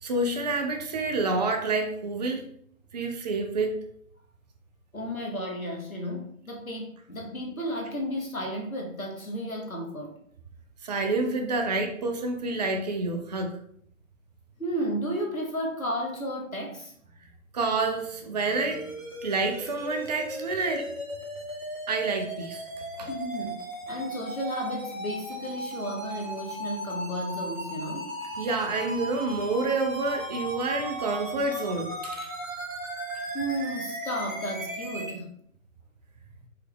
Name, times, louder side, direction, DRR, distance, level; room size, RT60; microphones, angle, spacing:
voice 1, 0.0-2.5 2.9-3.7 10.8-13.6 17.5-18.9 19.2-20.9 21.9-22.7 23.0-23.1 28.4-32.3, right 3 dB, 30° right, 4 dB, 0.5 m, -28 dB
voice 2, 4.9-10.1 14.6-16.9 23.1-28.1 33.3-35.3, equal, 85° left, 0 dB, 1.4 m, -33 dB
sound 1, 18.5-35.1, right 1 dB, 70° right, 1.9 m, -37 dB
4.6 x 3.0 x 3.6 m, 0.64 s
figure-of-eight pair, 130°, 41 cm